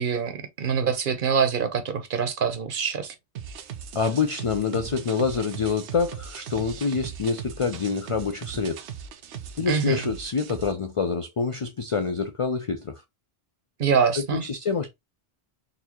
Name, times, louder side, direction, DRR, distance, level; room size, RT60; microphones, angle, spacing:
voice 1, 0.0-3.1 9.7-10.0 13.8-14.4, right 6 dB, 55° right, 0.8 m, -25 dB
sound 1, 3.4-10.7, right 8 dB, 85° right, 0.9 m, -39 dB
voice 2, 3.9-8.8 9.6-13.0 14.2-14.9, left 5 dB, 60° left, 0.3 m, -26 dB
4.0 x 2.6 x 2.9 m
omnidirectional pair, 1.1 m